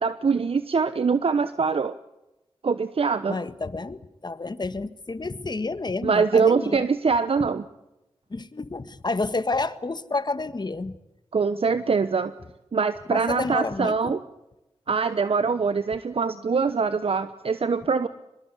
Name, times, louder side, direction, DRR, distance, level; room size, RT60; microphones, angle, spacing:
voice 1, 0.0-1.9 2.6-3.4 6.0-7.6 11.3-12.3 12.7-14.2 14.9-18.1, right 5 dB, 55° right, 12 dB, 1.0 m, -23 dB
voice 2, 3.3-6.9 8.3-11.0 13.1-14.2, left 3 dB, 40° left, 13 dB, 1.6 m, -30 dB
24.0 x 20.5 x 8.4 m, 0.95 s
cardioid pair, 40°, 11 cm